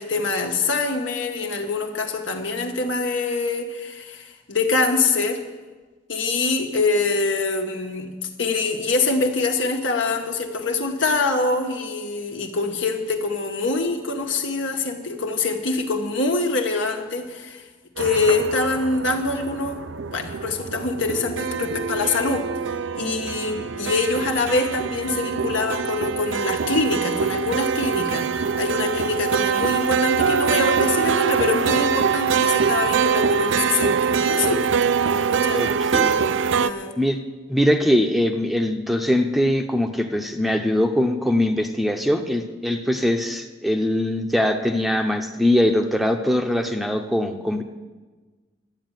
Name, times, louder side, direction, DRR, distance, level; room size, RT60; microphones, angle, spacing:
voice 1, 0.0-5.4 6.1-17.6 18.0-19.8 20.1-22.5 22.9-34.6 35.1-35.6 36.6-36.9, left 3 dB, 75° left, 4 dB, 1.5 m, -24 dB
sound 1, 18.0-36.7, right 6 dB, 75° right, 0.5 m, -24 dB
voice 2, 35.5-36.1 37.0-37.2 37.5-47.6, left 1 dB, ahead, 5 dB, 0.8 m, -22 dB
12.5 x 8.6 x 9.1 m, 1.3 s
head